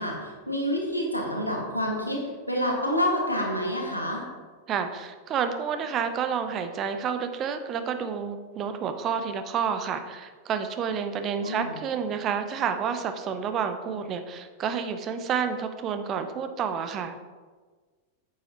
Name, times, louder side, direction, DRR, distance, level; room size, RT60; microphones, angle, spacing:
voice 1, 0.0-4.2 11.4-11.8, equal, 90° left, -1 dB, 1.6 m, -28 dB
voice 2, 4.7-17.2, right 7 dB, 30° right, 8 dB, 0.7 m, -29 dB
9.1 x 7.8 x 2.9 m, 1.4 s
figure-of-eight pair, 90°, 0 cm